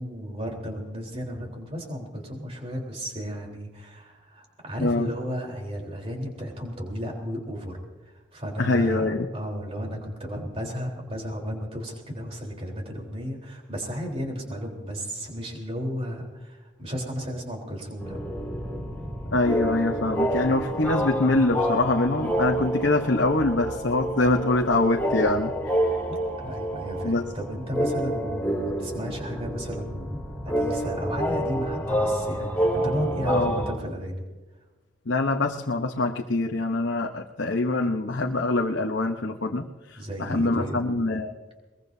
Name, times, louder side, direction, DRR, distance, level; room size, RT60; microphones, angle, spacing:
voice 1, 0.0-7.8 8.1-18.2 26.1-34.2 40.0-40.8, equal, 30° right, 0 dB, 3.8 m, -34 dB
voice 2, 8.6-9.3 19.3-25.5 27.0-27.2 33.2-33.6 35.1-41.3, left 2 dB, 60° left, 3 dB, 0.9 m, -24 dB
sound 1, 18.0-33.7, right 1 dB, 10° left, 2.7 m, -28 dB
22.0 x 21.0 x 2.7 m, 1.2 s
head